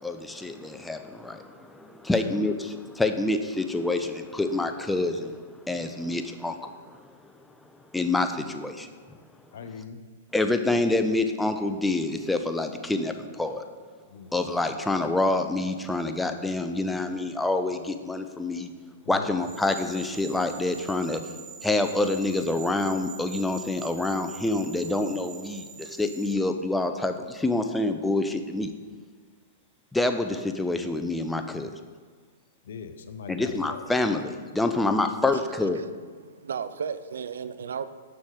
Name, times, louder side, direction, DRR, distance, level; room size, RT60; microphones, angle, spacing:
voice 1, 0.0-7.0 7.9-8.9 10.3-13.6 14.3-18.7 19.1-21.2 21.6-28.7 29.9-31.7 33.3-35.8, left 2 dB, 5° left, 6 dB, 0.5 m, -27 dB
voice 2, 9.5-10.0 14.1-14.3 19.0-19.3 32.7-33.8 34.7-34.8, left 6 dB, 70° left, 10 dB, 0.5 m, -40 dB
sound 1, 19.4-26.3, right 7 dB, 25° right, 0.9 m, -44 dB
voice 3, 36.2-37.9, right 7 dB, 75° right, 12 dB, 0.3 m, -34 dB
6.1 x 5.8 x 3.7 m, 1.6 s
hypercardioid pair, 115°, 0 cm